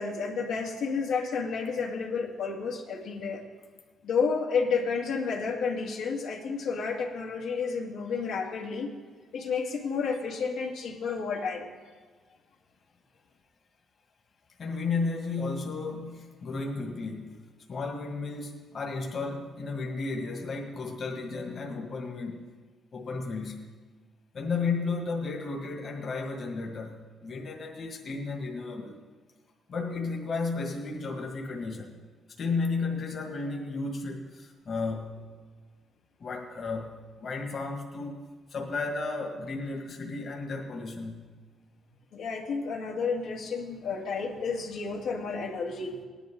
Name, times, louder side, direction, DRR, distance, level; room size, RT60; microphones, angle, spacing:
voice 1, 0.0-3.4 4.0-8.9 9.3-11.8 42.1-46.0, left 5 dB, 85° left, -2 dB, 2.1 m, -31 dB
voice 2, 14.6-17.4 17.7-22.5 22.9-23.7 24.3-29.0 29.7-32.0 32.4-35.3 36.2-41.3, left 4 dB, 50° left, 1 dB, 1.9 m, -33 dB
18.0 x 11.0 x 3.8 m, 1.5 s
cardioid pair, 90°, 0 cm